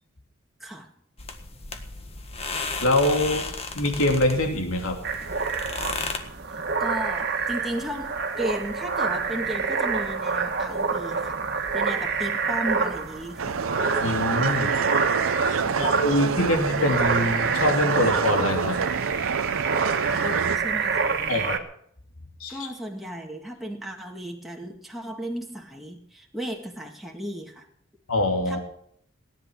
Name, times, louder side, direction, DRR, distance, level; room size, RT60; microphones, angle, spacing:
sound 1, 1.2-6.2, left 3 dB, 30° left, 1.5 m, -34 dB
voice 1, 2.5-5.0 14.0-14.7 15.8-18.8 21.3-21.6 22.4-22.6 28.1-28.6, left 1 dB, 85° left, 3 dB, 3.0 m, -24 dB
sound 2, 5.0-21.6, right 5 dB, 50° right, 1.6 m, -27 dB
voice 2, 6.8-11.4 11.7-13.6 20.1-21.2 22.5-27.7 28.5-28.6, right 1 dB, ahead, 0 dB, 1.9 m, -35 dB
sound 3, 13.4-20.6, right 6 dB, 85° right, 0.6 m, -27 dB
17.5 x 10.5 x 6.4 m, 0.67 s
head